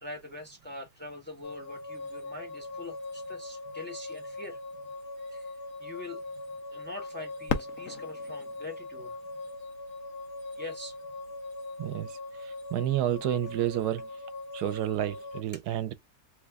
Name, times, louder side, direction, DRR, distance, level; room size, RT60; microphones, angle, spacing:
voice 1, 0.0-4.6 5.3-6.2 6.7-9.2 10.6-10.9 15.5-15.6, left 2 dB, 5° left, 1.1 m, -43 dB
sound 1, 1.4-15.4, left 2 dB, 80° left, 1.4 m, -41 dB
Fireworks, 7.5-10.2 10.9-11.0 11.7-12.1 14.0-14.2, left 6 dB, 65° left, 1.0 m, -37 dB
voice 2, 11.8-14.1 14.5-15.9, right 12 dB, 80° right, 1.1 m, -30 dB
3.2 x 2.3 x 3.4 m
omnidirectional pair, 1.7 m